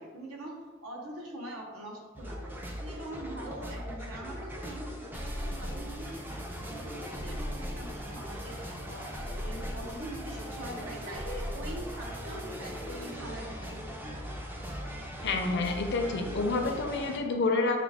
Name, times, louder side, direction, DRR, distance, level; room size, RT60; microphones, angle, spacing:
voice 1, 0.0-6.4 6.7-9.0 9.4-13.6, right 1 dB, 70° right, -1 dB, 0.9 m, -43 dB
sound 1, 2.1-17.2, equal, 10° right, 0.4 m, -39 dB
voice 2, 15.2-17.8, left 3 dB, 55° left, 3 dB, 0.5 m, -28 dB
4.9 x 2.3 x 3.5 m, 1.4 s
head